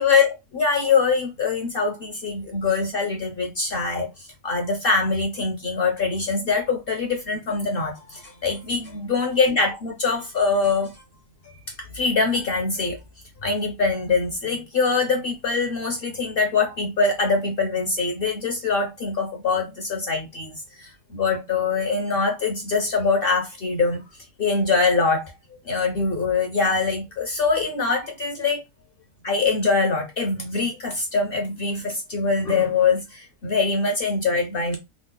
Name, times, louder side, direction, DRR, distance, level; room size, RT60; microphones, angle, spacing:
voice 1, 0.0-4.1 4.4-10.9 11.4-11.5 11.9-13.0 13.4-24.0 24.4-25.4 25.6-28.6 29.2-34.8, left 4 dB, 55° left, 0.7 m, -23 dB
3.6 x 2.1 x 3.7 m
omnidirectional pair, 1.7 m